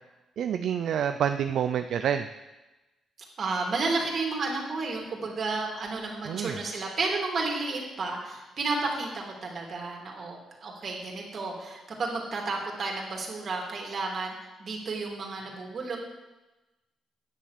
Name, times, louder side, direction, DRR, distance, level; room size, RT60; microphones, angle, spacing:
voice 1, 0.4-2.3 6.3-6.6, right 9 dB, 70° right, 8 dB, 0.4 m, -28 dB
voice 2, 3.4-14.3 14.6-16.0, right 3 dB, 50° right, -1 dB, 3.1 m, -32 dB
10.0 x 7.1 x 6.7 m, 1.1 s
cardioid pair, 90°, 0 cm